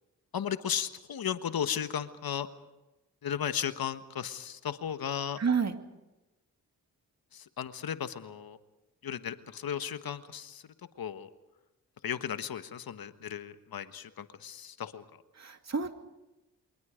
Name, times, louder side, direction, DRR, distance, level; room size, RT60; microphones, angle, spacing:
voice 1, 0.3-2.5 3.2-5.4 7.3-8.6 9.0-10.6 11.0-11.3 12.0-15.0, left 8 dB, 65° left, 11 dB, 1.4 m, -35 dB
voice 2, 5.4-5.8 15.4-15.9, right 5 dB, 45° right, 6 dB, 2.4 m, -29 dB
28.5 x 24.0 x 5.1 m, 1.0 s
supercardioid pair, 45°, 38 cm